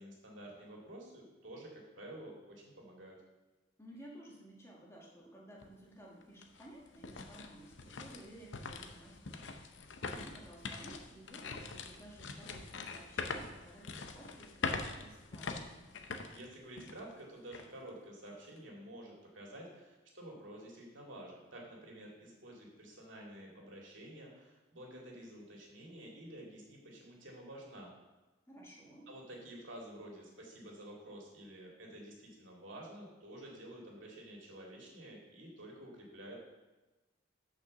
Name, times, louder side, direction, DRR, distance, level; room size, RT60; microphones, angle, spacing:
voice 1, 0.0-3.2 16.3-27.9 29.1-36.4, right 1 dB, 80° right, -2 dB, 2.3 m, -50 dB
voice 2, 3.8-9.4 10.1-15.7 28.5-29.1, right 1 dB, 15° left, -3 dB, 1.6 m, -55 dB
sound 1, 5.6-5.7 6.2-17.1 17.5-17.7 18.2-18.6, left 4 dB, 70° left, 0.7 m, -43 dB
6.4 x 5.7 x 6.8 m, 1.1 s
head